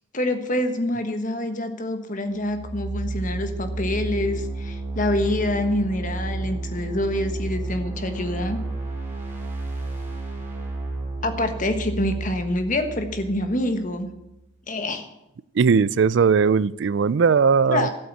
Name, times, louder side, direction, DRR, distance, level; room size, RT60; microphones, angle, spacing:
voice 1, 0.1-8.6 11.2-14.1 14.7-15.1 17.7-17.9, left 1 dB, 40° left, 1.4 m, -26 dB
sound 1, 2.3-14.1, right 2 dB, 10° right, 3.4 m, -31 dB
voice 2, 15.5-17.9, right 5 dB, 60° right, 0.4 m, -18 dB
12.5 x 8.2 x 8.5 m
head